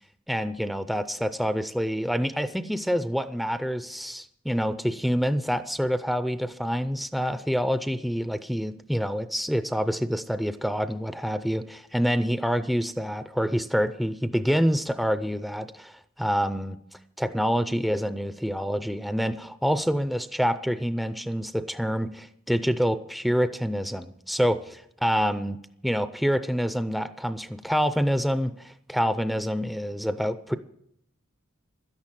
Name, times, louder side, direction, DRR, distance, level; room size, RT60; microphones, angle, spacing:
voice 1, 0.3-16.8 17.2-25.6 25.8-30.6, equal, ahead, 11 dB, 0.4 m, -27 dB
12.5 x 10.5 x 7.5 m, 0.74 s
head